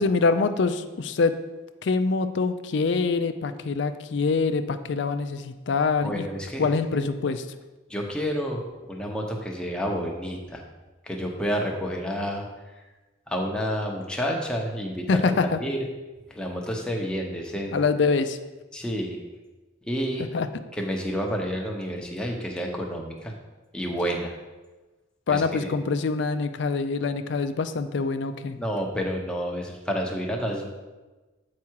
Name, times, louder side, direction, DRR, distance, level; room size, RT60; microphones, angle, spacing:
voice 1, 0.0-1.4 1.8-6.3 6.6-7.5 15.1-15.6 17.7-18.4 20.3-20.5 25.3-28.6, left 4 dB, 60° left, 10 dB, 0.4 m, -25 dB
voice 2, 6.0-7.1 7.9-8.6 8.9-10.6 11.1-12.5 13.3-15.8 16.3-17.8 18.7-19.2 19.9-20.3 20.8-23.3 23.7-24.3 25.3-25.7 28.5-30.7, equal, 5° left, 0 dB, 0.9 m, -29 dB
8.4 x 4.7 x 4.6 m, 1.2 s
head